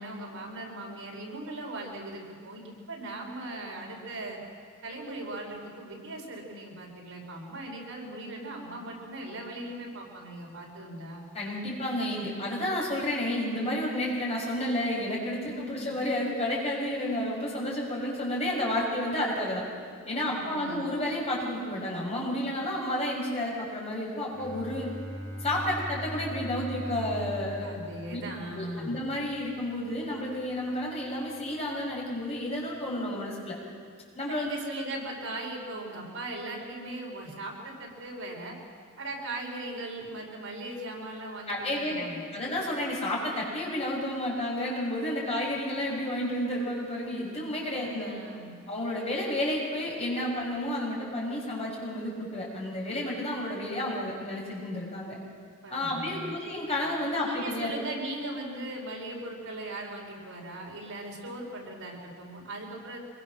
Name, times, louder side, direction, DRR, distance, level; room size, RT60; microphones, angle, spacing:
voice 1, 0.0-4.4 4.8-11.3 15.5-15.9 20.2-20.8 27.6-28.9 34.3-38.6 39.0-42.3 47.7-48.5 55.6-56.3 57.1-63.0, right 1 dB, 70° right, -1 dB, 5.2 m, -39 dB
voice 2, 11.3-19.6 20.1-24.9 25.4-27.7 28.1-28.2 28.5-33.6 34.2-34.5 41.5-42.1 42.3-48.1 48.7-55.2 55.7-57.7, left 1 dB, 30° left, -3 dB, 6.0 m, -31 dB
Bowed string instrument, 24.3-30.0, equal, 85° right, 7.1 m, -40 dB
25.5 x 22.5 x 6.4 m, 2.1 s
head